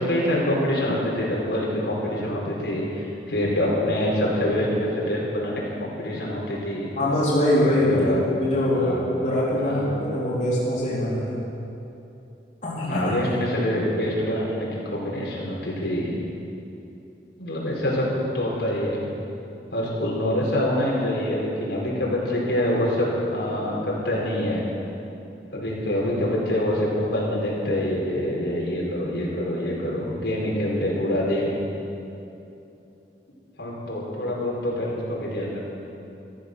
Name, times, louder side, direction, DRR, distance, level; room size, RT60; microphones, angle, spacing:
voice 1, 0.1-6.9 7.6-8.2 8.8-9.1 9.6-9.9 12.8-16.1 17.4-19.1 19.7-24.6 25.5-31.5 33.6-35.6, left 1 dB, 85° left, -5 dB, 4.5 m, -25 dB
voice 2, 6.9-11.5 12.6-13.4, left 1 dB, 40° left, -8 dB, 3.3 m, -23 dB
14.0 x 14.0 x 6.7 m, 2.9 s
head